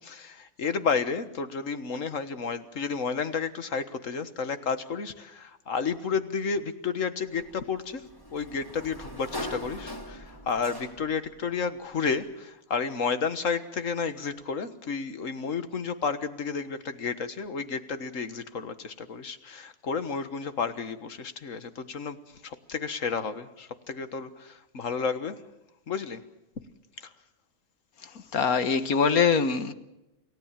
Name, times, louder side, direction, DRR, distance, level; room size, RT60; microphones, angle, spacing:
voice 1, 0.0-8.0 8.3-22.2 22.4-25.4 25.9-26.2 27.0-27.1, left 5 dB, 65° left, 1.8 m, -31 dB
Sliding door, 7.3-11.3, left 1 dB, 15° left, 3.0 m, -41 dB
voice 2, 28.3-29.7, left 6 dB, 80° left, 1.8 m, -23 dB
28.5 x 17.0 x 7.5 m
omnidirectional pair, 1.5 m